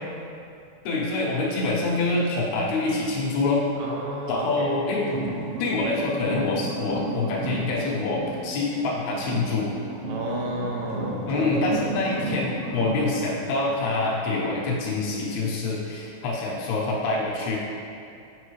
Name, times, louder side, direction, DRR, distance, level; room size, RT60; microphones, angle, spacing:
voice 1, 0.8-3.6 4.3-5.0 5.6-9.7 11.3-17.6, left 3 dB, 80° left, -4 dB, 3.0 m, -26 dB
voice 2, 3.8-4.8 10.1-11.9, right 1 dB, 90° right, -3 dB, 3.1 m, -31 dB
sound 1, 5.0-8.9 9.1-13.1, right 2 dB, 65° right, 1.7 m, -33 dB
9.3 x 5.3 x 3.2 m, 2.5 s
omnidirectional pair, 4.5 m